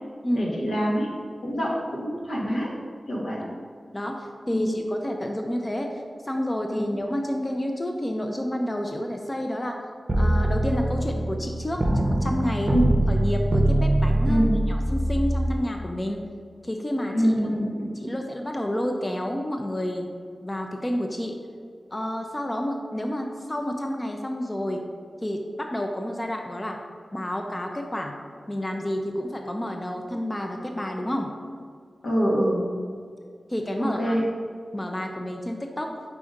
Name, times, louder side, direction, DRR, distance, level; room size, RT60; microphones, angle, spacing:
voice 1, 0.3-1.1 1.4-1.7 2.0-2.7 3.1-3.4 4.5-4.7 6.7-6.9 12.7-12.9 14.3-14.6 17.1-18.0 32.0-32.6 33.8-34.2, equal, 85° left, -4 dB, 1.3 m, -25 dB
voice 2, 3.9-9.8 10.2-12.7 13.1-16.2 16.6-17.3 18.0-20.1 20.4-21.4 21.9-24.8 25.2-26.8 27.1-28.2 28.5-31.3 33.5-34.2 34.7-35.9, left 1 dB, 25° left, 2 dB, 0.6 m, -29 dB
sound 1, 10.1-15.6, right 1 dB, 35° right, 0.7 m, -23 dB
4.8 x 4.1 x 5.1 m, 2.1 s
cardioid pair, 55°, 0 cm